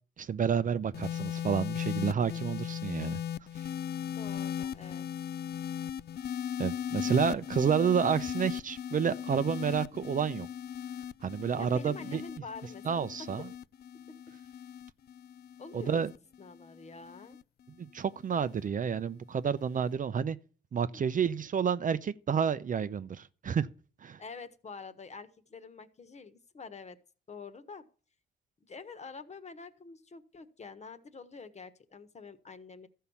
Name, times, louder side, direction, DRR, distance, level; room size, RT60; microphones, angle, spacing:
voice 1, 0.2-3.2 6.6-10.5 11.2-12.2 12.9-13.4 15.7-16.1 17.8-20.4 20.7-23.7 24.0-24.2, right 7 dB, 40° right, 0.7 m, -30 dB
sound 1, 0.9-17.4 18.3-18.7, left 9 dB, 55° left, 0.5 m, -38 dB
voice 2, 4.2-5.1 11.6-13.1 15.6-16.0 16.4-17.4 20.9-21.0 24.2-27.0 27.3-27.8 28.6-32.9, left 4 dB, 35° left, 1.3 m, -47 dB
14.0 x 5.6 x 7.2 m
cardioid pair, 90°, 20 cm